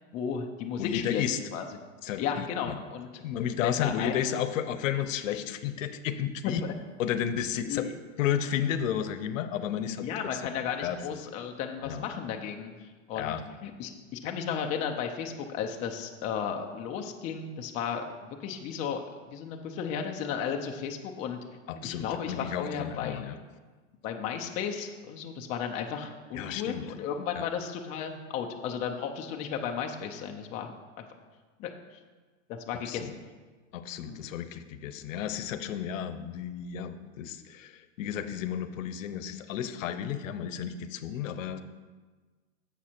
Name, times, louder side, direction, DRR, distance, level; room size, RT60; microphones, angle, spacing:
voice 1, 0.1-1.2 1.5-1.7 2.2-3.1 3.6-4.3 6.4-6.7 7.6-7.9 10.0-13.3 13.6-19.0 19.3-21.4 21.8-23.2 24.0-31.0 31.6-31.7 32.5-33.2 34.1-34.2, left 7 dB, 20° left, 3 dB, 0.3 m, -34 dB
voice 2, 0.8-1.4 2.0-2.7 3.2-6.6 7.0-7.9 8.2-10.4 10.8-11.0 11.8-12.0 13.2-13.4 21.7-23.4 26.3-26.9 27.3-27.4 32.8-33.1 33.7-41.6, left 9 dB, 75° left, 11 dB, 0.7 m, -32 dB
7.2 x 6.0 x 4.3 m, 1.3 s
supercardioid pair, 140°, 39 cm